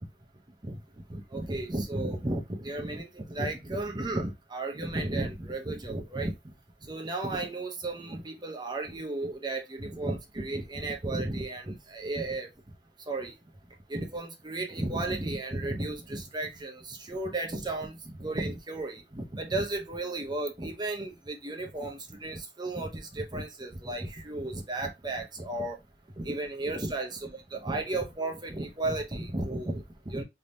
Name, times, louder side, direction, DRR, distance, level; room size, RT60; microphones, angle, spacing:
voice 1, 1.1-6.5 6.8-12.5 13.1-13.4 13.9-25.8 26.2-30.2, right 2 dB, 25° right, 0.7 m, -34 dB
3.4 x 2.9 x 2.6 m
head